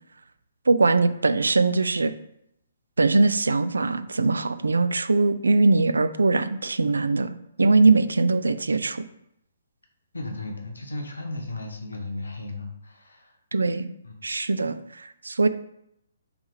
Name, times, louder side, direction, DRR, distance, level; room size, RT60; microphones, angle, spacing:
voice 1, 0.7-2.1 3.0-9.0 13.5-13.9 14.2-15.5, right 3 dB, 70° right, 12 dB, 0.3 m, -21 dB
voice 2, 10.1-13.3 14.0-14.1, left 2 dB, 70° left, 2 dB, 1.0 m, -35 dB
3.5 x 3.3 x 4.6 m, 0.78 s
figure-of-eight pair, 130°, 0 cm